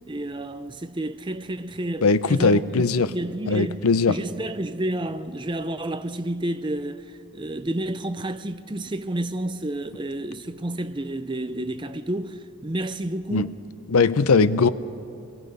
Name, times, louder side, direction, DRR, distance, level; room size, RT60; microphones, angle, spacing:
voice 1, 0.1-2.0 2.3-7.0 7.3-12.4 12.6-13.6, right 1 dB, 20° right, 0.6 m, -30 dB
voice 2, 2.0-3.1 3.5-4.2 13.3-13.5 13.9-14.7, left 4 dB, 80° left, 0.6 m, -19 dB
27.5 x 20.5 x 5.4 m
head